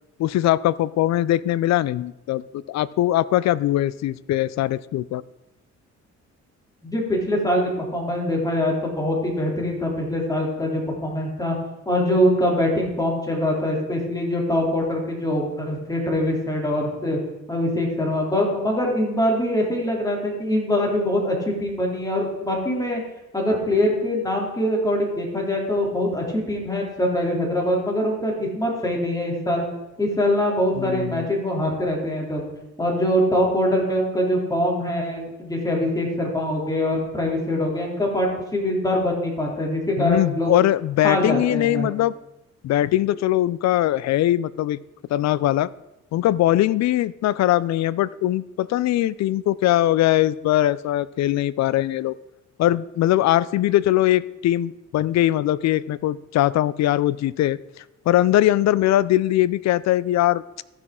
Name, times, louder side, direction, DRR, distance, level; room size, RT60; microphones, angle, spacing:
voice 1, 0.2-5.2 30.8-31.3 40.0-42.1 42.6-44.8 45.1-45.7 46.1-52.1 52.6-57.6 58.1-60.4, left 14 dB, 65° left, 20 dB, 0.4 m, -21 dB
voice 2, 6.8-11.5 11.8-17.2 17.5-23.0 23.3-29.6 30.0-32.5 32.8-40.5 41.0-41.9, left 1 dB, 10° left, -2 dB, 3.2 m, -23 dB
14.5 x 6.1 x 3.7 m, 0.96 s
cardioid pair, 90°, 30 cm